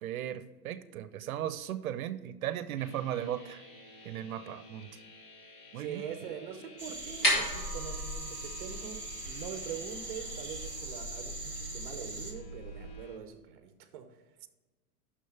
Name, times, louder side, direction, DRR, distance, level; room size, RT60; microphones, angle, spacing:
voice 1, 0.0-3.6 4.0-5.0 5.7-6.0, right 11 dB, 65° right, 14 dB, 0.7 m, -36 dB
sound 1, 2.8-13.2, left 1 dB, 65° left, 2.1 m, -53 dB
voice 2, 5.8-14.2, right 8 dB, 35° right, 8 dB, 0.8 m, -43 dB
sound 2, 6.8-12.3, right 2 dB, 10° left, 0.5 m, -42 dB
sound 3, 6.9-12.9, equal, 30° left, 2.6 m, -36 dB
6.4 x 6.2 x 5.8 m, 1.2 s
supercardioid pair, 175°, 46 cm